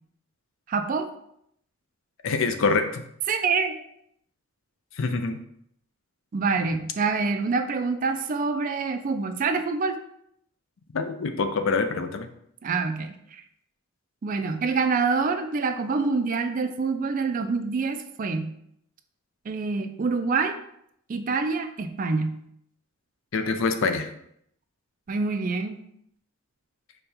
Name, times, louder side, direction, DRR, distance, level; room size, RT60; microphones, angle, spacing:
voice 1, 0.7-1.1 3.3-3.8 6.3-10.0 12.6-13.4 14.2-18.5 19.5-20.6 21.1-22.4 25.1-25.8, right 4 dB, 40° right, 8 dB, 0.4 m, -26 dB
voice 2, 2.2-3.0 5.0-5.4 10.9-12.3 23.3-24.1, left 4 dB, 65° left, 7 dB, 0.5 m, -25 dB
5.1 x 2.3 x 4.2 m, 0.72 s
head